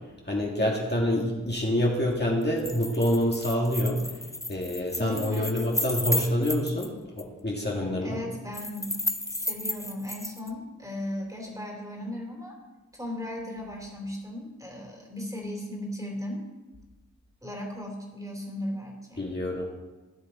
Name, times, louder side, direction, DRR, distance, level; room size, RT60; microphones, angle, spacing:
voice 1, 0.3-4.2 4.5-8.2 19.2-19.6, left 1 dB, 35° left, -3 dB, 1.9 m, -27 dB
sound 1, 2.4-6.9 7.2-7.3 8.5-10.5, left 1 dB, 10° left, 0.6 m, -33 dB
voice 2, 5.0-6.0 8.0-8.9 9.3-12.5 12.9-16.4 17.4-19.3, left 1 dB, 10° right, 0 dB, 3.0 m, -36 dB
14.5 x 9.9 x 4.2 m, 1.2 s
wide cardioid pair, 85°, 31 cm